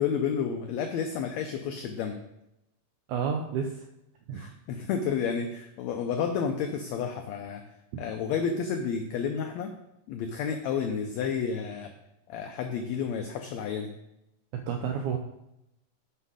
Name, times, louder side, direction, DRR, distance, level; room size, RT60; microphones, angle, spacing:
voice 1, 0.0-2.2 4.3-7.6 8.0-9.7 10.1-11.9 12.3-13.9, left 6 dB, 85° left, 5 dB, 1.5 m, -31 dB
voice 2, 3.1-3.9 4.3-4.5 14.5-15.2, right 7 dB, 75° right, 3 dB, 1.9 m, -30 dB
7.8 x 5.4 x 4.9 m, 0.87 s
omnidirectional pair, 3.8 m